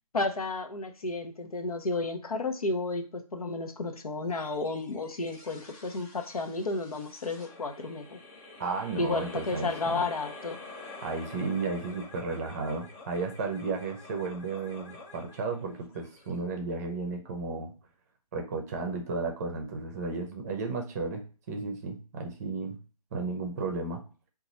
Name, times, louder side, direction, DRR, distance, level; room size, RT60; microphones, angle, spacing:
voice 1, 0.1-8.2 9.0-10.6, left 3 dB, 70° left, 6 dB, 0.8 m, -32 dB
sound 1, 4.3-16.9, left 3 dB, 5° left, 0.4 m, -48 dB
voice 2, 8.6-10.1 11.0-17.7 18.3-22.8 23.1-24.0, right 3 dB, 25° right, 3 dB, 0.7 m, -33 dB
3.8 x 2.5 x 4.1 m, 0.37 s
figure-of-eight pair, 140°, 20 cm